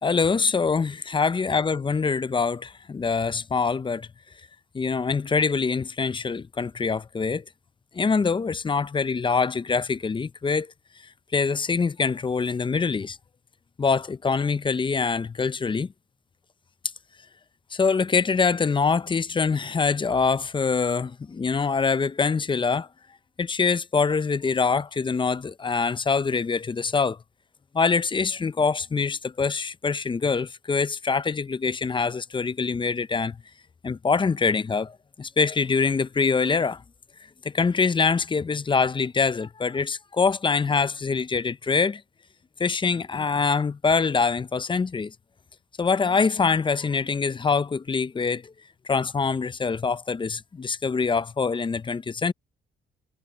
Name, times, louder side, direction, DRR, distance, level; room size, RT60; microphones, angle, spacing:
voice 1, 0.0-4.1 4.7-7.4 7.9-10.7 11.3-13.2 13.8-15.9 17.7-22.9 23.4-27.2 27.7-33.4 33.8-36.8 37.4-42.0 42.6-45.1 45.8-48.5 48.8-52.3, left 5 dB, 25° left, 0.6 m, -24 dB
cardioid pair, 90°, 20 cm